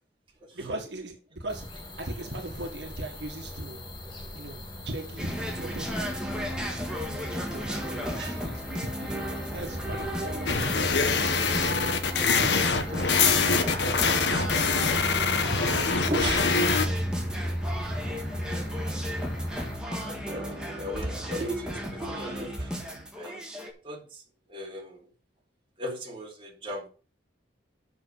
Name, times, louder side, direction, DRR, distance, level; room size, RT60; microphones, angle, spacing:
voice 1, 0.5-1.7 2.0-3.8 4.3-5.9 7.0-9.2 9.5-11.3 12.2-13.3, right 1 dB, 75° right, 1.7 m, -39 dB
sound 1, 1.5-19.8, equal, 25° left, 2.1 m, -36 dB
sound 2, 5.2-23.7, equal, 5° right, 2.1 m, -35 dB
sound 3, 10.5-16.9, left 5 dB, 75° left, 1.3 m, -24 dB
voice 2, 16.1-16.6 20.0-24.2 24.5-25.1 25.8-26.9, right 1 dB, 30° right, 2.9 m, -36 dB
7.4 x 6.3 x 6.6 m
head